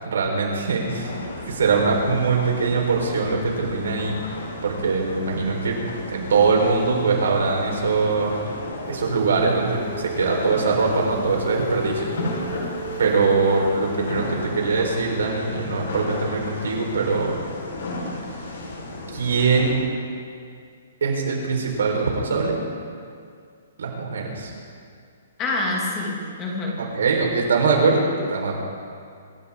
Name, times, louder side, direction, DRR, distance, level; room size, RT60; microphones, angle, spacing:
voice 1, 0.0-1.1 1.4-4.2 4.6-5.8 6.1-8.3 8.9-12.1 13.0-17.4 19.1-19.7 21.0-22.6 23.8-24.5 26.8-28.6, right 4 dB, 85° right, 0 dB, 4.6 m, -22 dB
sound 1, 0.8-19.7, left 2 dB, 70° left, 4.8 m, -34 dB
Female singing, 8.8-14.6, right 1 dB, 40° left, 5.5 m, -35 dB
voice 2, 25.4-26.8, left 2 dB, 15° left, -2 dB, 2.4 m, -26 dB
26.5 x 14.0 x 3.9 m, 2.2 s
hypercardioid pair, 175°, 0 cm